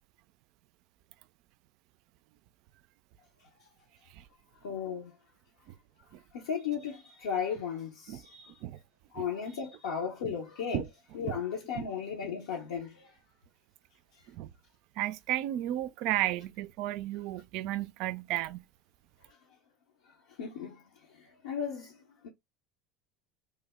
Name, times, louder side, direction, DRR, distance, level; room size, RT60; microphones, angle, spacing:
voice 1, 4.6-5.1 6.3-8.6 9.1-10.8 11.1-13.2 20.1-20.8 21.1-22.3, left 7 dB, 80° left, 0.7 m, -36 dB
voice 2, 15.0-18.6, right 14 dB, 65° right, 0.3 m, -33 dB
3.3 x 2.0 x 3.4 m
hypercardioid pair, 85°, 0 cm